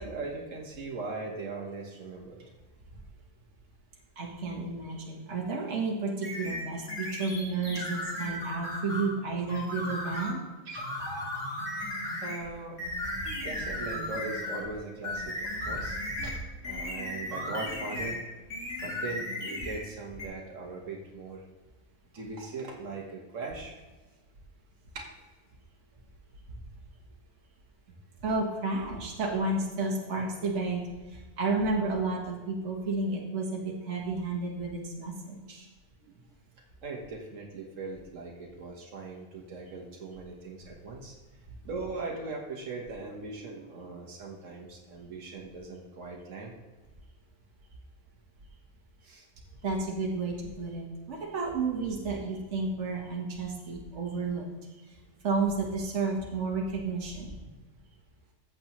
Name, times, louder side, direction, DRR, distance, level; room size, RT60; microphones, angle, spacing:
voice 1, 0.0-2.5 9.5-9.6 10.1-10.3 10.7-10.9 12.2-12.8 13.4-18.2 18.8-21.4 22.1-23.8 24.9-25.2 36.0-36.1 36.8-41.2 41.6-46.5 49.0-49.2, right 3 dB, 90° right, 0 dB, 1.5 m, -40 dB
voice 2, 4.2-10.4 16.7-16.8 26.5-26.6 28.2-35.7 49.6-54.5 54.9-55.0 55.2-57.3, right 3 dB, 70° right, -1 dB, 1.5 m, -31 dB
sound 1, 6.2-9.1 9.5-10.4 10.7-12.4 12.8-14.7 15.0-18.2 18.5-19.8 20.2-20.3, left 1 dB, 80° left, 3.0 m, -35 dB
14.0 x 7.7 x 3.0 m, 1.2 s
omnidirectional pair, 1.3 m